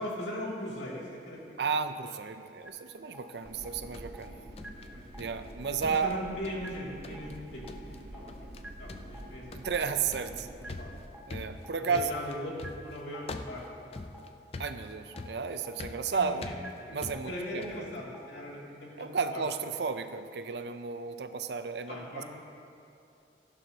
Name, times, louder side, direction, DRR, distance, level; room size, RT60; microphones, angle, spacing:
voice 1, 0.0-1.6 4.3-4.5 4.9-5.2 6.0-8.3 8.8-9.7 10.3-10.4 10.8-10.9 11.9-12.5 12.8-14.2 16.1-16.5 16.8-17.0 17.2-19.4 21.9-22.2, left 1 dB, 90° left, -5 dB, 2.7 m, -40 dB
voice 2, 1.6-4.4 5.2-6.1 9.5-10.5 11.3-12.1 14.6-16.5 16.9-17.9 19.0-22.2, right 5 dB, 75° right, 10 dB, 0.5 m, -33 dB
sound 1, 2.6-2.7 3.1-3.2 3.6-3.7 4.1-4.2 4.6-4.7 5.1-5.2 5.6-5.7 6.1-6.2 6.6-6.7 7.1-7.2 7.6-7.7 8.1-8.2 8.6-8.7 9.1-9.2 9.6-9.7 10.1-10.2 10.6-10.7 11.1-11.2 11.6-11.7 12.1-12.2 12.6-12.7 13.1-13.2 13.6-13.7 14.1-14.2 14.6-14.7 15.1-15.2 15.6-15.7 16.1-16.2 16.6-16.7 17.1-17.2 17.6-17.7 18.1-18.2, right 1 dB, 5° right, 0.7 m, -46 dB
sound 2, 3.4-11.0, right 1 dB, 55° right, 0.9 m, -47 dB
sound 3, 3.5-5.5 5.8-6.8 7.0-7.4 7.7-8.0 8.3-8.6 8.9-17.9, left 2 dB, 35° left, 0.4 m, -45 dB
15.5 x 11.5 x 2.9 m, 2.6 s
head